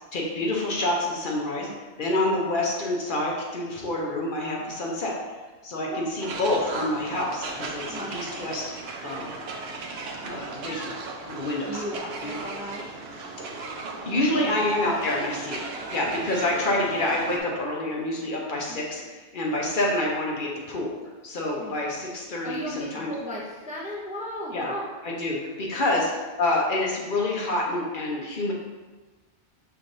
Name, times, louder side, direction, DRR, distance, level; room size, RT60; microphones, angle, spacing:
voice 1, 0.1-1.7 2.0-5.1 5.6-8.6 9.0-9.3 10.2-11.8 12.2-12.4 14.1-15.6 15.9-20.9 21.2-23.1 24.5-24.7 25.0-26.1 26.4-28.5, left 1 dB, 55° left, -2 dB, 0.8 m, -27 dB
sound 1, 6.2-17.4, right 3 dB, 70° right, 0.8 m, -36 dB
voice 2, 7.8-8.2 9.3-9.4 11.7-12.9 14.4-14.6 15.7-15.9 18.7-18.8 21.6-21.7 22.4-24.9 25.8-26.0, equal, 10° right, -5 dB, 0.4 m, -36 dB
5.7 x 3.4 x 2.6 m, 1.3 s
omnidirectional pair, 1.1 m